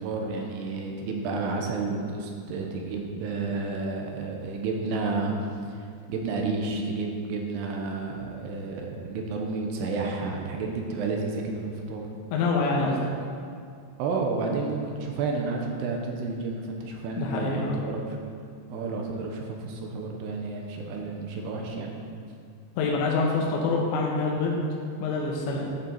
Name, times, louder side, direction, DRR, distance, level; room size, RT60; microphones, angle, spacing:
voice 1, 0.0-5.3 5.6-12.1 14.0-18.0 18.7-21.9, right 3 dB, 80° right, 1 dB, 2.9 m, -31 dB
voice 2, 12.3-13.0 17.2-17.8 22.8-24.6 25.0-25.7, left 3 dB, 85° left, -1 dB, 3.3 m, -26 dB
11.0 x 6.7 x 4.6 m, 2.3 s
omnidirectional pair, 5.0 m